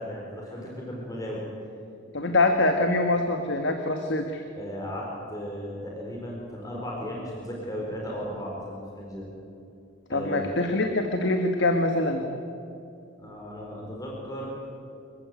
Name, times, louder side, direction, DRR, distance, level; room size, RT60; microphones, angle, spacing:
voice 1, 0.0-1.4 4.6-9.3 10.1-10.5 13.2-14.7, equal, 20° left, -3 dB, 4.6 m, -35 dB
voice 2, 2.1-4.4 10.1-12.2, left 2 dB, 65° left, 5 dB, 1.8 m, -24 dB
26.5 x 15.0 x 9.5 m, 2.7 s
head